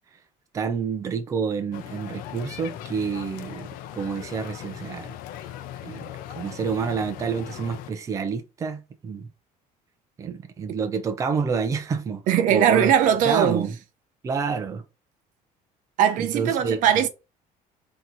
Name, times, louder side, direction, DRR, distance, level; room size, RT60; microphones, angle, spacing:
voice 1, 0.5-5.1 5.8-9.3 10.2-12.9 13.2-13.8 14.2-14.8 16.2-17.1, right 5 dB, 20° right, 0.5 m, -28 dB
sound 1, 1.7-7.9, left 11 dB, 70° left, 0.6 m, -39 dB
voice 2, 12.3-13.7 16.0-17.1, right 9 dB, 60° right, 0.6 m, -20 dB
4.0 x 2.9 x 4.5 m
cardioid pair, 180°, 15 cm